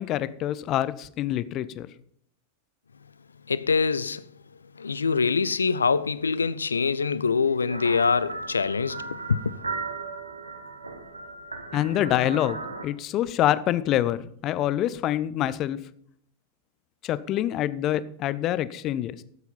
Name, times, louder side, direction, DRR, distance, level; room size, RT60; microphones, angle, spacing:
voice 1, 0.0-1.9 11.7-15.8 17.0-19.2, left 12 dB, 35° left, 0.7 m, -26 dB
voice 2, 3.5-4.2 4.8-9.5, left 5 dB, 75° left, 0.5 m, -24 dB
sound 1, 7.7-12.9, right 3 dB, 80° right, 1.4 m, -36 dB
13.5 x 8.2 x 5.6 m
figure-of-eight pair, 90°, 0 cm